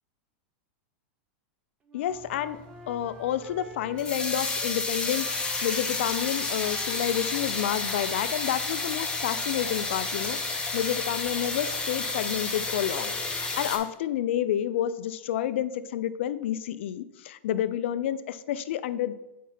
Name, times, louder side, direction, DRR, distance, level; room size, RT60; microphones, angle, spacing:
voice 1, 1.9-2.6 2.9-19.1, left 11 dB, 70° left, 14 dB, 0.4 m, -30 dB
Wind instrument woodwind instrument, 1.9-8.2, right 3 dB, 20° right, 0.9 m, -48 dB
sound 1, 2.1-13.8, left 3 dB, 15° left, 1.2 m, -31 dB
4.6 x 4.5 x 5.7 m, 0.97 s
hypercardioid pair, 115°, 7 cm